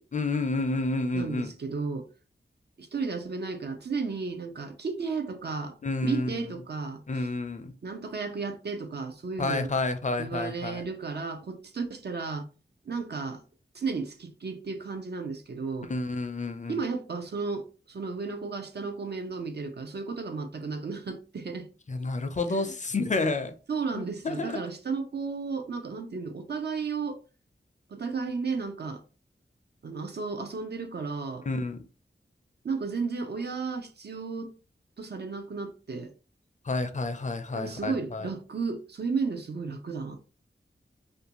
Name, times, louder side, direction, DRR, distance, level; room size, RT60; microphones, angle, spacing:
voice 1, 0.1-1.5 5.8-6.3 7.1-7.7 9.4-10.8 15.9-16.8 21.9-23.6 23.9-24.6 31.5-31.8 36.6-38.3, left 2 dB, 40° left, 0.4 m, -30 dB
voice 2, 1.1-2.1 2.8-5.8 6.0-7.3 7.8-9.7 10.2-12.5 12.9-13.4 13.7-15.9 16.7-21.7 22.5-22.7 23.7-27.2 27.9-29.0 29.8-31.5 32.6-34.5 35.0-36.1 37.5-40.2, right 4 dB, 60° right, 0.5 m, -33 dB
2.5 x 2.2 x 2.9 m
wide cardioid pair, 55°, 20 cm